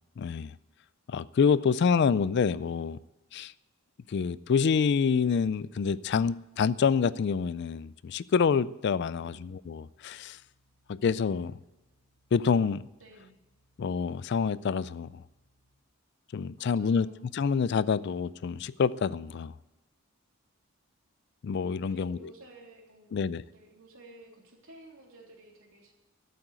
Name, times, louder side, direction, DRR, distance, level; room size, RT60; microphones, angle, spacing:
voice 1, 0.2-0.5 1.1-3.0 3.3-3.5 4.1-10.4 10.9-11.6 12.3-12.9 13.8-15.2 16.3-17.1 17.3-19.5 21.4-22.2 23.1-23.4, left 6 dB, 50° left, 0.3 m, -27 dB
sound 1, 8.9-15.7, equal, 90° left, 3.0 m, -71 dB
voice 2, 9.1-9.5 13.0-13.4 16.6-17.2 21.8-25.9, right 2 dB, 65° right, 3.5 m, -53 dB
13.0 x 7.7 x 8.8 m
head